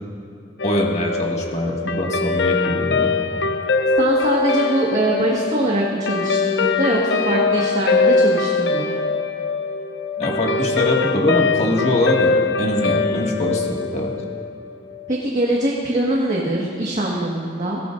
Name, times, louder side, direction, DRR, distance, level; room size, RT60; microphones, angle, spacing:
Guitar, 0.6-15.2, left 4 dB, 75° left, 0.6 m, -22 dB
voice 1, 0.6-3.2 10.2-14.1, left 1 dB, 40° left, -1 dB, 1.9 m, -23 dB
voice 2, 4.0-8.9 15.1-17.8, right 1 dB, 40° right, -4 dB, 1.7 m, -22 dB
22.0 x 17.0 x 2.6 m, 2.7 s
head